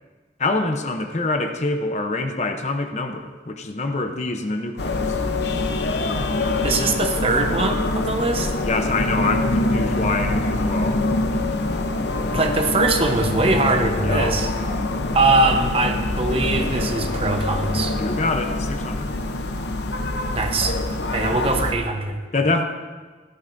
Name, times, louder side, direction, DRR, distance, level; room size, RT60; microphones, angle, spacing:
voice 1, 0.4-5.2 8.6-11.6 14.0-15.0 17.9-19.2 21.4-21.5 22.3-22.6, left 2 dB, 40° left, 6 dB, 0.7 m, -26 dB
sound 1, 4.8-21.7, left 2 dB, 70° left, 0.8 m, -24 dB
voice 2, 6.6-8.6 12.3-14.5 15.1-17.9 20.3-20.8 21.1-22.2, right 3 dB, 30° right, 4 dB, 0.9 m, -22 dB
16.0 x 13.5 x 2.7 m, 1.4 s
head